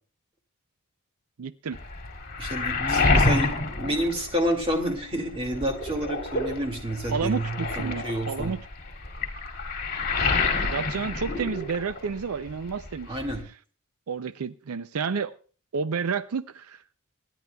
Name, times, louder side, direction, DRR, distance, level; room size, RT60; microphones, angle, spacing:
voice 1, 1.4-1.8 7.1-8.6 10.6-13.2 14.1-15.3 15.7-16.8, right 5 dB, 80° right, 13 dB, 0.5 m, -30 dB
Waves surf, 1.7-4.9 5.3-12.2 12.5-13.4, left 3 dB, 40° left, 2.3 m, -28 dB
voice 2, 2.4-3.5 3.8-8.5 13.1-13.4, right 1 dB, 25° right, 3 dB, 2.1 m, -29 dB
26.5 x 10.5 x 2.3 m, 0.40 s
head